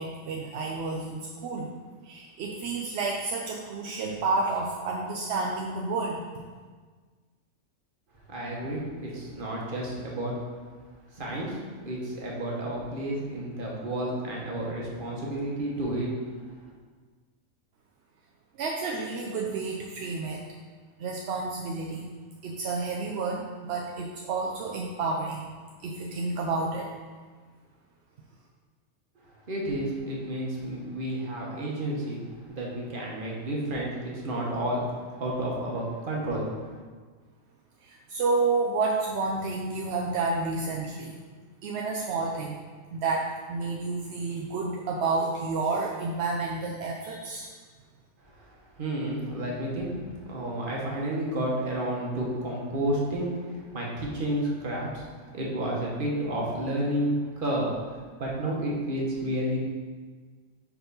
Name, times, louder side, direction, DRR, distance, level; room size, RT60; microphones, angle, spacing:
voice 1, 0.0-1.8 2.0-6.3 18.6-20.4 21.0-22.1 22.4-25.5 25.8-26.9 37.8-41.2 41.6-42.6 42.9-47.5, right 3 dB, 65° right, -1 dB, 0.7 m, -30 dB
voice 2, 8.3-10.3 11.1-16.1 29.5-36.7 48.2-59.6, right 1 dB, 40° right, -3 dB, 1.2 m, -31 dB
4.7 x 3.7 x 5.3 m, 1.5 s
omnidirectional pair, 1.5 m